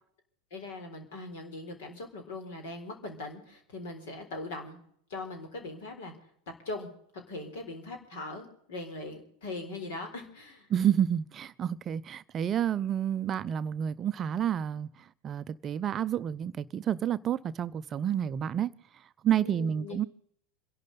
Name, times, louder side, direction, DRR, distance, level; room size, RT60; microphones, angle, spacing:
voice 1, 0.5-4.8 5.1-6.1 6.7-6.9 7.3-10.7 19.4-20.0, left 2 dB, 60° left, 3.9 m, -40 dB
voice 2, 10.7-18.7 19.2-20.0, right 9 dB, 30° right, 0.5 m, -29 dB
27.5 x 11.5 x 4.0 m
figure-of-eight pair, 85°, 0 cm